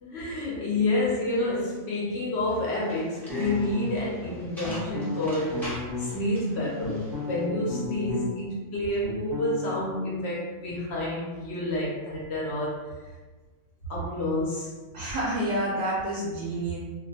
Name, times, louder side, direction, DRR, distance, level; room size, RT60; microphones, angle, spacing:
voice 1, 0.0-12.9 13.9-14.7, left 1 dB, 60° left, -5 dB, 0.8 m, -29 dB
sound 1, 2.5-7.4, left 2 dB, 5° left, 0.3 m, -41 dB
sound 2, 3.3-4.1 4.6-6.1 6.6-8.5 8.7-9.8, left 4 dB, 35° left, 0.8 m, -34 dB
voice 2, 14.9-16.8, right 1 dB, 60° right, -7 dB, 0.8 m, -28 dB
2.4 x 2.1 x 2.6 m, 1.3 s
omnidirectional pair, 1.4 m